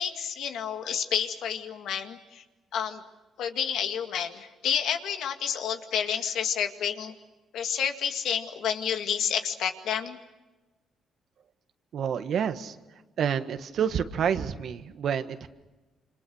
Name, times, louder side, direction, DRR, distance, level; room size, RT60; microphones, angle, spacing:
voice 1, 0.0-2.4 2.7-3.0 3.4-7.1 7.5-10.2, left 8 dB, 75° left, 6 dB, 2.1 m, -30 dB
voice 2, 11.9-12.7 13.2-15.5, right 8 dB, 65° right, 9 dB, 1.6 m, -28 dB
28.0 x 26.0 x 6.4 m, 1.1 s
cardioid pair, 90°, 0 cm